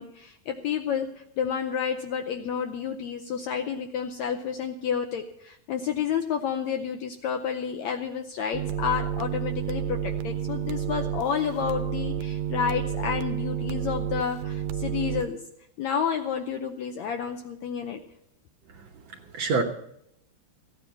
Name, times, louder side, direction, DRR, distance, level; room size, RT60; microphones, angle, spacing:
voice 1, 0.0-15.4 15.8-18.0, left 7 dB, 75° left, 5 dB, 1.7 m, -30 dB
sound 1, 8.5-15.3, right 9 dB, 80° right, 2.2 m, -30 dB
voice 2, 18.7-19.6, right 4 dB, 60° right, 1 dB, 1.9 m, -29 dB
15.5 x 9.7 x 5.8 m, 0.78 s
omnidirectional pair, 3.9 m